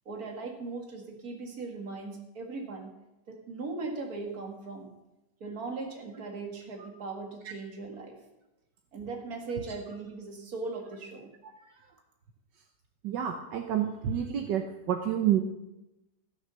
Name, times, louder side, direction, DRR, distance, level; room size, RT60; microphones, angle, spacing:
voice 1, 0.1-2.9 3.3-4.9 5.4-8.2 8.9-11.3, right 3 dB, 60° right, 3 dB, 2.3 m, -39 dB
voice 2, 13.0-15.4, right 10 dB, 80° right, 5 dB, 1.5 m, -28 dB
14.5 x 6.2 x 6.8 m, 0.94 s
omnidirectional pair, 1.9 m